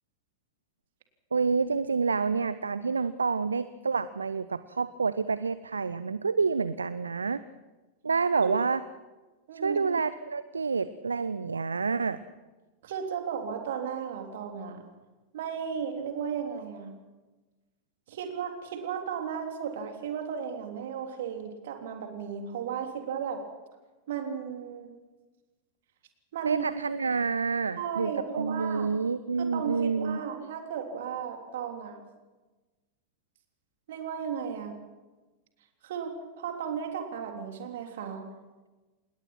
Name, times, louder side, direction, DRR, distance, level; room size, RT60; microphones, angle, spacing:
voice 1, 1.3-7.4 8.0-8.8 9.5-12.2 26.4-30.2, right 5 dB, 75° right, 16 dB, 0.6 m, -28 dB
voice 2, 9.5-9.9 12.8-14.8 15.3-16.9 18.1-23.4 24.1-24.9 26.3-26.6 27.8-28.9 29.4-32.0 33.9-34.7 35.8-38.3, right 7 dB, 55° right, 4 dB, 3.4 m, -35 dB
27.0 x 20.5 x 6.1 m, 1.2 s
figure-of-eight pair, 90°, 0 cm